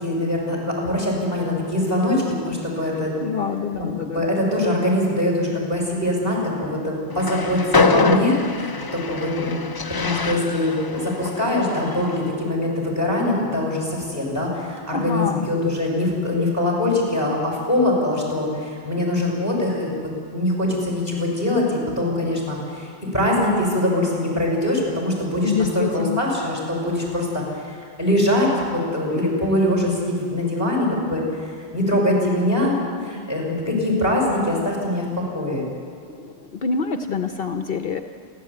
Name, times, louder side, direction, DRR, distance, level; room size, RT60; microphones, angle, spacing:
voice 1, 0.0-3.1 3.7-9.6 10.0-27.6 28.0-31.2 31.7-32.8 33.0-35.7, left 1 dB, 15° right, -2 dB, 6.1 m, -23 dB
voice 2, 3.2-4.2 14.9-15.5 25.4-26.2 36.2-38.0, left 5 dB, 60° left, 7 dB, 1.0 m, -26 dB
Train, 7.1-12.4, left 3 dB, 30° left, 0.5 m, -24 dB
29.0 x 12.0 x 8.6 m, 2.3 s
omnidirectional pair, 1.1 m